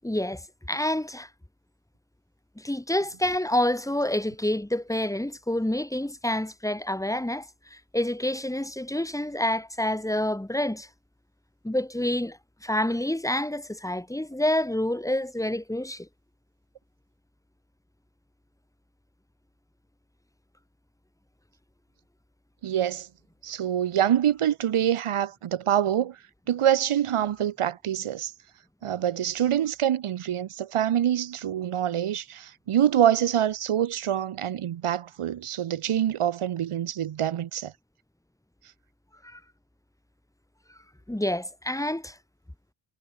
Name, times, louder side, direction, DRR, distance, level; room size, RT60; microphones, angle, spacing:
voice 1, 0.0-1.3 2.6-10.9 11.6-16.1 39.2-39.4 41.1-42.2, left 1 dB, 5° left, 7.3 m, -28 dB
voice 2, 22.6-23.1 23.4-26.2 26.5-28.3 28.8-37.7, right 10 dB, 85° right, 7.9 m, -25 dB
wide cardioid pair, 150°, 49 cm